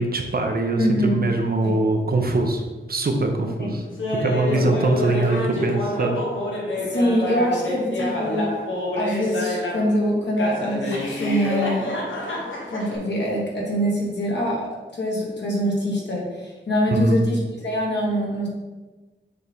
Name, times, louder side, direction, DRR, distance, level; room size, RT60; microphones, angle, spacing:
voice 1, 0.0-2.6 2.9-3.8 4.1-6.2 16.9-17.2, right 2 dB, 50° right, 3 dB, 0.8 m, -22 dB
voice 2, 0.8-1.2 1.6-1.7 3.6-3.7 4.6-4.7 6.8-8.5 9.0-11.9 12.7-18.5, equal, 65° left, -3 dB, 1.8 m, -24 dB
Laughter, 4.0-9.9 10.4-13.0, left 1 dB, 85° left, 1.2 m, -27 dB
6.7 x 3.9 x 3.6 m, 1.2 s
wide cardioid pair, 95°, 20 cm